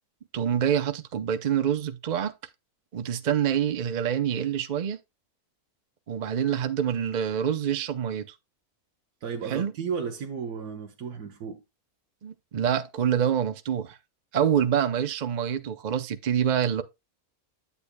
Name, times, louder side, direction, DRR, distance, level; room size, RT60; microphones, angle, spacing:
voice 1, 0.3-2.3 2.9-5.0 6.1-8.3 9.5-9.7 12.2-14.0 14.3-16.8, right 9 dB, 50° right, 0.5 m, -26 dB
voice 2, 9.2-11.6, right 6 dB, 90° right, 1.5 m, -34 dB
9.1 x 8.3 x 2.2 m
omnidirectional pair, 1.6 m